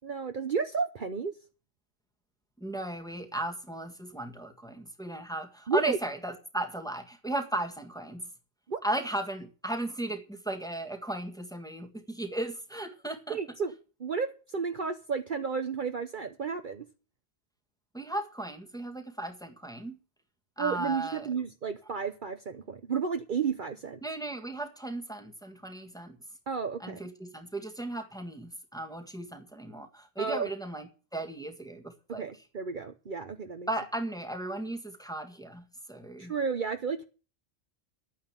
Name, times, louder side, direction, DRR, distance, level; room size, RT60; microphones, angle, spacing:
voice 1, 0.0-1.3 5.7-6.0 8.7-8.8 13.3-13.7 14.0-16.9 20.6-24.0 26.5-27.0 30.2-30.5 32.1-33.7 36.2-37.0, right 5 dB, 50° right, 1.0 m, -32 dB
voice 2, 2.6-8.3 8.8-13.4 17.9-20.0 20.6-21.3 24.0-26.2 26.8-32.3 33.7-36.3, right 1 dB, 5° left, 1.7 m, -36 dB
11.0 x 9.5 x 7.4 m
omnidirectional pair, 1.2 m